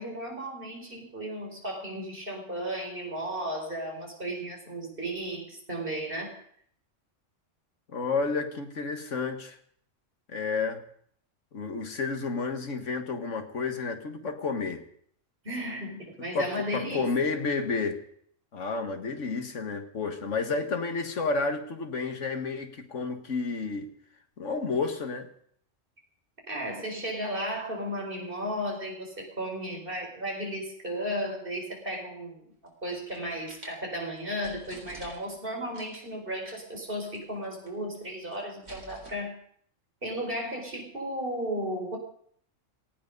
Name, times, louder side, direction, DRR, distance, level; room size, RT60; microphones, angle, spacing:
voice 1, 0.0-6.4 15.4-17.1 26.5-32.5 32.8-39.4 40.0-42.0, equal, 45° right, 1 dB, 4.9 m, -34 dB
voice 2, 7.9-9.6 10.3-10.8 11.5-14.8 16.3-18.0 18.5-23.9 24.4-25.3, left 4 dB, 70° left, 5 dB, 1.9 m, -31 dB
sound 1, 32.7-33.8 34.2-34.3 34.4-35.4 35.7-36.1 36.5-36.7 37.0-37.2 37.4-38.1 38.3-39.1, right 1 dB, 70° right, 4.3 m, -48 dB
18.5 x 14.5 x 5.3 m, 0.64 s
omnidirectional pair, 1.3 m